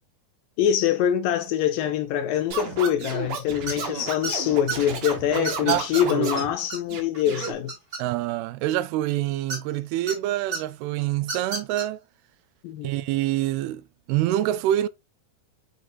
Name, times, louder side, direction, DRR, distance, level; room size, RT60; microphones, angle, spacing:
voice 1, 0.6-7.7 12.6-12.9, left 10 dB, 80° left, 2.1 m, -24 dB
Scratching (performance technique), 2.5-6.5 6.9-7.5, right 6 dB, 60° right, 2.1 m, -33 dB
sound 1, 3.7-3.9 4.2-4.8 5.4-6.0 6.4-6.5 6.7-6.8 7.1-8.3 9.5-10.1 10.5-10.6 11.2-11.8, right 4 dB, 25° right, 1.6 m, -31 dB
voice 2, 5.4-6.3 8.0-12.0 12.8-13.8 14.1-14.9, right 13 dB, 90° right, 2.5 m, -26 dB
7.9 x 4.9 x 2.6 m
omnidirectional pair, 4.4 m